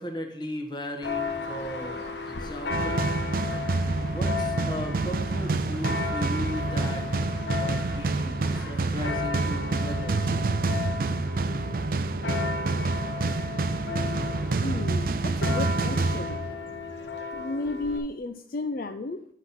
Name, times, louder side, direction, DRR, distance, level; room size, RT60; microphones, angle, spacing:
voice 1, 0.0-3.1 4.0-7.0 7.5-10.4, left 1 dB, 25° left, 2 dB, 1.3 m, -37 dB
Church bell, 1.0-18.0, left 4 dB, 85° left, 1.1 m, -35 dB
sound 1, 2.7-16.9, right 3 dB, 55° right, 0.4 m, -28 dB
voice 2, 14.6-16.4 17.3-19.3, left 2 dB, 50° left, 7 dB, 0.4 m, -33 dB
10.0 x 4.2 x 5.6 m, 0.68 s
head